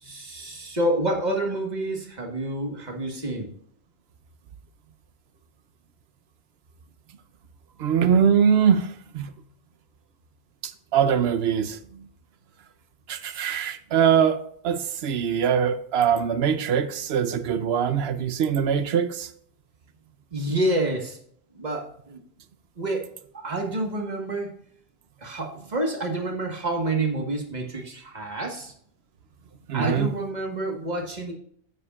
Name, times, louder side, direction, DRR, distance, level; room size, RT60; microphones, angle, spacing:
voice 1, 0.0-3.5 20.3-21.2 21.5-22.2 22.8-23.0 23.3-24.5 25.2-28.7 29.7-31.3, right 1 dB, 45° right, 1.6 m, -28 dB
voice 2, 7.8-9.3 10.6-11.8 13.1-19.3 29.7-30.1, right 7 dB, 80° right, 0.9 m, -22 dB
9.4 x 8.1 x 2.4 m
omnidirectional pair, 1.0 m